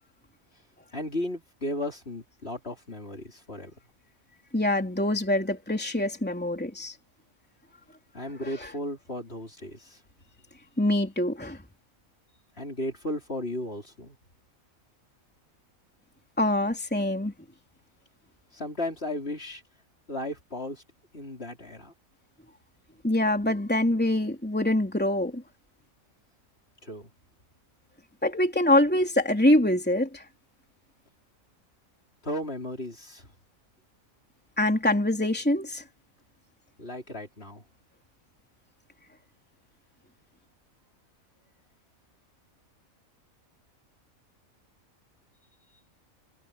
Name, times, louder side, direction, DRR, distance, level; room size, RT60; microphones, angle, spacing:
voice 1, 0.9-3.7 8.1-10.0 12.6-14.2 18.5-19.6 20.1-20.8 21.1-21.9 26.8-27.1 32.2-33.3 36.8-37.6, left 1 dB, 45° left, 4.5 m, -35 dB
voice 2, 4.5-6.9 8.6-8.7 10.8-11.6 16.4-17.3 23.0-25.4 28.2-30.2 34.6-35.8, left 1 dB, 5° left, 3.4 m, -24 dB
omnidirectional pair, 1.5 m